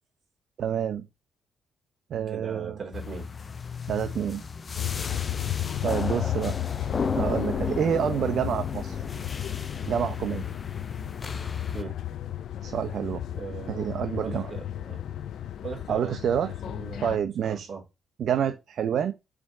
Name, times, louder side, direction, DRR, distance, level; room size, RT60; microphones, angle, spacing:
voice 1, 0.6-1.0 2.1-2.8 3.9-4.4 5.8-6.6 7.1-9.0 9.9-10.5 12.6-13.2 13.7-14.5 15.9-16.5 17.0-17.7 18.2-19.1, right 8 dB, 65° right, 0.6 m, -28 dB
voice 2, 2.3-3.3 5.6-5.7 11.7-12.0 13.3-13.9 14.2-15.0 15.6-17.8, right 5 dB, 50° right, 2.8 m, -39 dB
sound 1, 2.9-11.8, left 5 dB, 35° left, 0.7 m, -35 dB
sound 2, 4.7-17.2, left 11 dB, 75° left, 0.4 m, -33 dB
4.9 x 3.6 x 5.5 m
cardioid pair, 90°, 0 cm